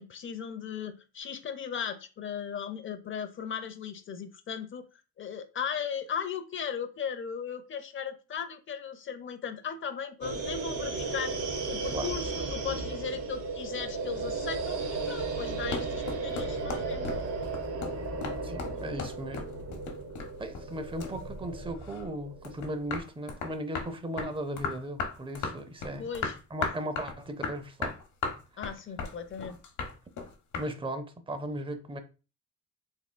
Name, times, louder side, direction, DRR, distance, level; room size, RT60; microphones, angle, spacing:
voice 1, 0.0-4.9 5.2-11.4 11.7-17.1 26.0-26.3 28.6-29.6, left 7 dB, 40° left, 0.6 m, -37 dB
sound 1, 10.2-23.0, right 3 dB, 85° right, 1.2 m, -35 dB
sound 2, 15.4-20.8 21.0-22.1 22.4-30.7, left 5 dB, 70° left, 1.0 m, -36 dB
voice 2, 18.4-19.4 20.4-26.1 26.5-28.0 30.6-32.0, right 1 dB, 15° right, 0.6 m, -37 dB
3.6 x 3.5 x 2.2 m
cardioid pair, 90°, 30 cm